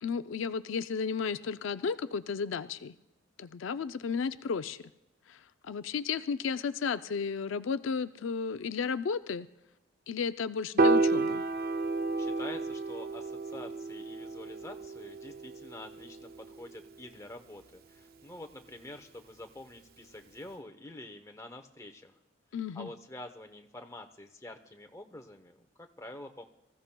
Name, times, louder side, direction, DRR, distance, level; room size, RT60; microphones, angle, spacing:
voice 1, 0.0-2.9 3.4-4.8 5.3-9.5 10.1-11.4 22.5-22.9, left 5 dB, 70° left, 11 dB, 0.4 m, -33 dB
Piano, 10.8-17.1, right 3 dB, 50° right, 0.4 m, -31 dB
voice 2, 12.2-22.1 22.7-26.4, left 1 dB, 15° left, 5 dB, 0.8 m, -47 dB
25.0 x 14.5 x 2.2 m, 0.93 s
head